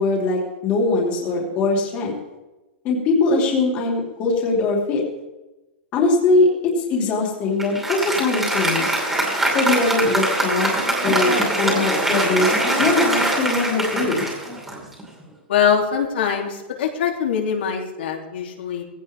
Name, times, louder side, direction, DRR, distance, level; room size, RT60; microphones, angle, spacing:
voice 1, 0.0-2.1 2.8-5.0 5.9-8.9 9.5-10.7 11.0-14.2, left 3 dB, 25° left, -2 dB, 2.6 m, -21 dB
Applause, 7.6-15.2, right 1 dB, 5° right, 2.6 m, -22 dB
voice 2, 15.5-18.8, left 7 dB, 75° left, 1 dB, 3.1 m, -22 dB
18.5 x 16.5 x 3.6 m, 1.1 s
supercardioid pair, 180°, 6 cm